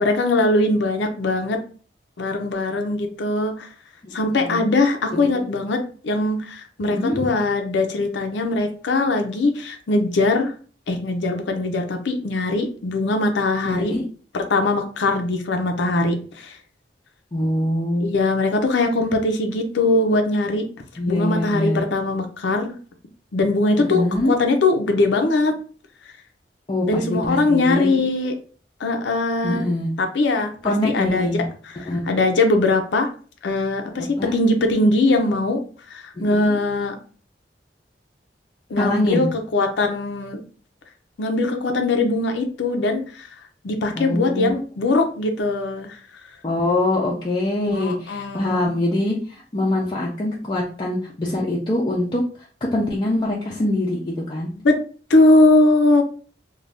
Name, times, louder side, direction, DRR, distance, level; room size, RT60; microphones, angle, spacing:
voice 1, 0.0-1.6 2.2-3.7 4.1-10.5 10.9-13.9 14.3-16.6 18.0-20.6 21.1-22.7 23.3-25.5 26.9-28.3 28.8-29.6 30.0-31.4 31.6-33.1 33.4-35.6 35.9-36.9 38.7-40.4 41.2-43.3 43.6-45.9 47.7-48.7 54.6-54.8 55.1-56.0, left 2 dB, 85° left, 5 dB, 0.5 m, -21 dB
voice 2, 4.0-4.6 5.2-5.4 6.9-7.2 13.7-14.0 17.3-18.2 21.0-21.8 23.8-24.3 26.7-27.9 29.4-29.9 30.6-31.4 31.9-32.0 34.0-34.4 36.2-36.6 38.8-39.3 44.0-44.5 46.4-52.2 52.7-54.5, left 1 dB, 25° left, -4 dB, 0.4 m, -24 dB
2.5 x 2.2 x 3.3 m, 0.41 s
head